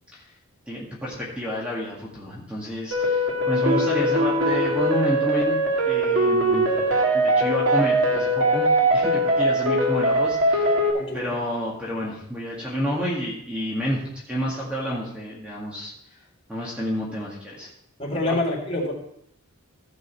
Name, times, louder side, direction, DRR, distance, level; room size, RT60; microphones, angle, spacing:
voice 1, 0.7-5.6 5.9-6.8 7.1-10.8 11.1-15.9 16.5-17.7 18.3-18.4, equal, 5° right, -5 dB, 2.0 m, -29 dB
sound 1, 2.9-10.9, right 1 dB, 75° right, 2.2 m, -21 dB
voice 2, 10.9-11.3 18.0-18.9, left 1 dB, 30° left, -3 dB, 3.7 m, -27 dB
15.5 x 5.3 x 4.8 m, 0.72 s
head